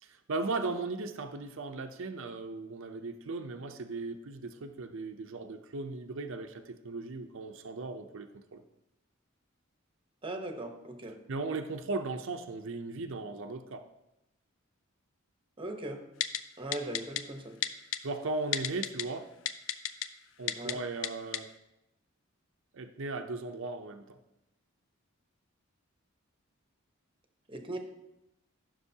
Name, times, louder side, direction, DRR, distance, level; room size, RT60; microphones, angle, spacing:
voice 1, 0.0-8.6 11.3-13.9 18.0-19.3 20.4-21.5 22.7-24.2, right 3 dB, 65° right, 6 dB, 0.6 m, -37 dB
voice 2, 10.2-11.2 15.6-16.0 16.6-17.6 20.6-20.8 27.5-27.8, right 1 dB, 25° right, 4 dB, 1.0 m, -39 dB
Typing, 16.2-16.4 16.7-17.2 17.6-18.0 18.5-19.0 19.5-20.1 20.5-20.7 21.0-21.1 21.3-21.4, left 11 dB, 65° left, 0.5 m, -30 dB
14.0 x 6.1 x 2.8 m, 0.91 s
head